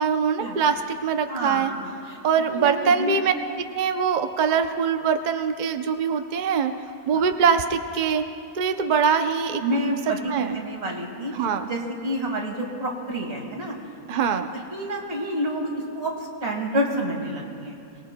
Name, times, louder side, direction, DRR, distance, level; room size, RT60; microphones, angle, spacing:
voice 1, 0.0-1.7 2.2-3.3 3.7-6.7 7.1-8.2 8.5-9.8 10.3-10.6 11.3-11.7 14.1-14.5, right 6 dB, 70° right, 7 dB, 0.4 m, -23 dB
voice 2, 1.3-2.2 2.5-3.3 7.1-7.2 9.6-11.3 11.6-13.7 14.7-16.1 16.4-17.8, equal, 45° right, -1 dB, 2.3 m, -28 dB
24.0 x 19.5 x 2.2 m, 2.5 s
omnidirectional pair, 1.6 m